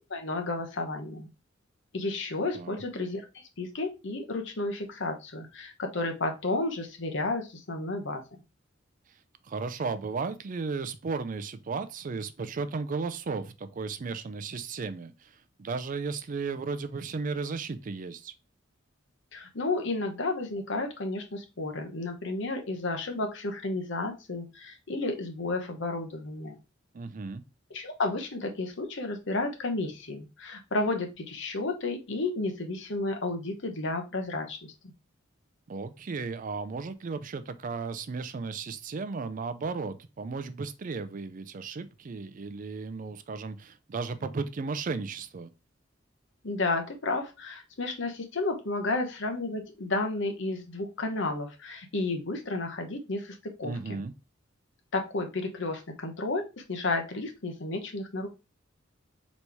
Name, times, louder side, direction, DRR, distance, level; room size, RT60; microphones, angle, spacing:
voice 1, 0.1-1.3 1.9-3.3 3.6-8.2 19.3-26.6 27.7-34.7 46.4-53.8 54.9-58.3, left 2 dB, 65° left, 0.9 m, -32 dB
voice 2, 9.5-18.3 26.9-27.4 35.7-45.5 53.6-54.1, right 4 dB, 40° right, 0.4 m, -35 dB
4.1 x 3.1 x 3.3 m
head